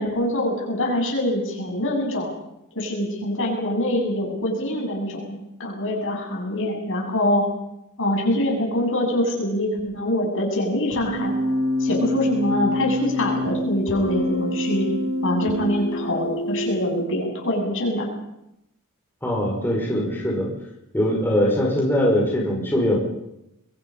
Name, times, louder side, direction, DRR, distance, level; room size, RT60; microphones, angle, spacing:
voice 1, 0.0-2.3 2.7-7.4 8.0-11.3 11.8-14.9 15.2-18.1, left 1 dB, 60° left, 0 dB, 8.0 m, -24 dB
Keyboard (musical), 10.9-16.9, left 1 dB, 80° left, 6.5 m, -26 dB
voice 2, 19.2-20.5 20.9-23.0, equal, 10° left, -2 dB, 5.5 m, -21 dB
26.0 x 23.5 x 5.6 m, 0.85 s
head